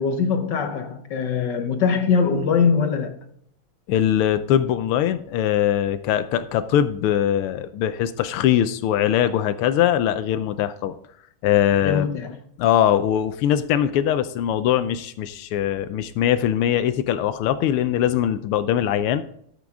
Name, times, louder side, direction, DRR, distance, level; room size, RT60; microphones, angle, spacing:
voice 1, 0.0-3.2 11.8-12.4, left 5 dB, 60° left, 1.4 m, -22 dB
voice 2, 3.9-10.9 11.4-12.2 12.6-19.2, left 10 dB, 85° left, 1.5 m, -21 dB
13.5 x 7.6 x 3.5 m
omnidirectional pair, 2.4 m